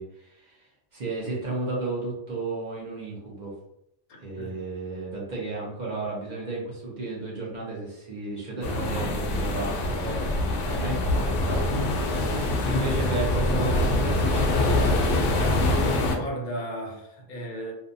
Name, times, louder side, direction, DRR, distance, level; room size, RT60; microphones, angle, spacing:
voice 1, 0.0-3.5 4.2-11.7 12.4-15.0, right 2 dB, 45° right, -4 dB, 0.8 m, -33 dB
voice 2, 4.1-4.6 12.6-12.9 13.5-13.7 16.0-17.7, right 1 dB, 50° left, 1 dB, 0.7 m, -35 dB
sound 1, 8.6-16.2, left 2 dB, 75° left, 0.9 m, -24 dB
2.7 x 2.2 x 2.5 m, 0.82 s
omnidirectional pair, 1.2 m